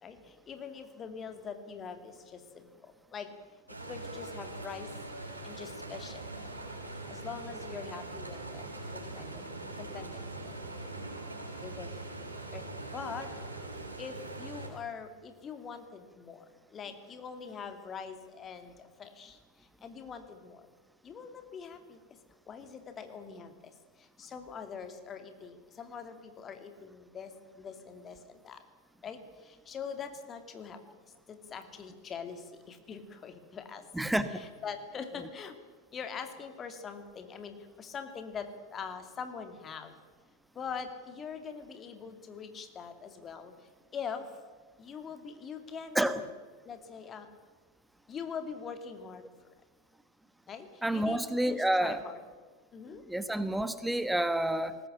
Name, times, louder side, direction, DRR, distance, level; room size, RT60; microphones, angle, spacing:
voice 1, 0.0-3.3 3.8-4.9 5.4-6.5 7.1-9.4 9.8-10.5 11.6-12.1 12.5-12.7 12.9-13.3 14.0-16.4 16.7-20.7 21.0-22.2 22.5-23.7 24.0-28.6 29.0-30.8 31.3-35.6 35.9-40.0 40.5-43.5 43.9-44.3 44.8-46.2 46.6-47.3 48.1-49.3 50.5-52.2 52.7-53.0, left 6 dB, 25° left, 7 dB, 2.6 m, -43 dB
sound 1, 3.7-14.7, right 2 dB, 85° right, 6.1 m, -42 dB
voice 2, 33.9-34.5 45.9-46.2 50.8-52.0 52.9-54.8, right 1 dB, 5° right, 12 dB, 1.2 m, -29 dB
20.5 x 19.0 x 8.9 m, 1.4 s
figure-of-eight pair, 90°, 0 cm